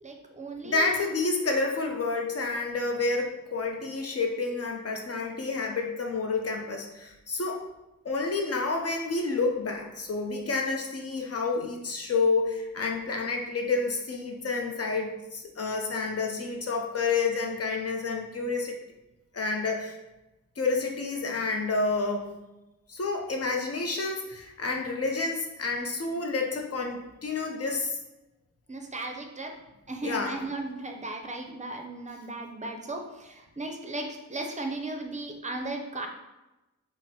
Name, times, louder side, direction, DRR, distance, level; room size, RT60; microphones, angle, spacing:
voice 1, 0.0-0.9 28.7-29.5 29.9-36.1, right 2 dB, 25° right, 3 dB, 0.5 m, -36 dB
voice 2, 0.6-7.6 8.0-18.8 19.3-20.0 20.6-22.3 22.9-28.0 30.0-30.4, left 3 dB, 50° left, 2 dB, 0.6 m, -29 dB
3.8 x 2.0 x 4.0 m, 0.98 s
wide cardioid pair, 100°, 31 cm